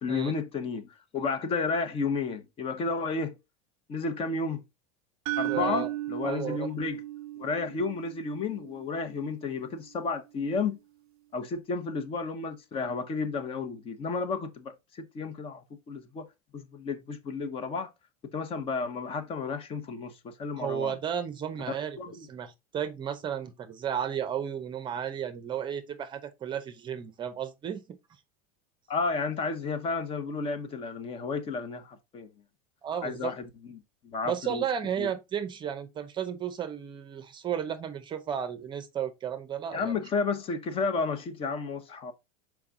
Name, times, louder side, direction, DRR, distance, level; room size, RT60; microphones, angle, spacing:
voice 1, 0.0-3.4 3.9-4.6 5.4-7.0 7.4-10.8 11.3-16.3 16.5-17.9 18.3-20.9 22.0-22.3 28.9-32.3 33.0-34.6 35.0-35.1 39.7-42.1, left 4 dB, 30° left, 1.0 m, -32 dB
sound 1, 5.3-9.3, right 16 dB, 80° right, 0.4 m, -36 dB
voice 2, 5.5-5.9 6.2-6.7 20.6-28.0 32.8-33.3 34.3-40.0, right 8 dB, 25° right, 0.7 m, -33 dB
5.8 x 4.7 x 3.7 m
supercardioid pair, 140°, 19 cm